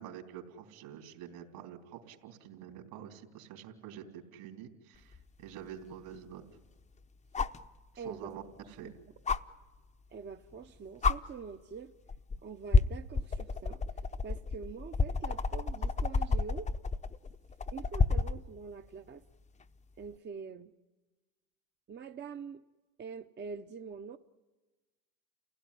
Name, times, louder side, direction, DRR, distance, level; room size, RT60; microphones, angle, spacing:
voice 1, 0.0-6.4 7.9-8.9, right 9 dB, 65° right, 3 dB, 3.7 m, -47 dB
sound 1, 5.1-5.2 7.3-7.7 9.3-9.4 10.5-10.6 11.0-11.2 12.1-12.4 12.7-18.4 20.0-20.1, left 4 dB, 15° left, 0.8 m, -29 dB
voice 2, 8.0-8.3 8.6-8.9 10.1-11.9 12.4-13.8 14.2-16.7 17.7-19.2 20.0-20.7 21.9-22.6 23.0-24.2, right 6 dB, 25° right, 6 dB, 0.8 m, -44 dB
29.5 x 16.5 x 10.0 m, 1.2 s
supercardioid pair, 95°, 40 cm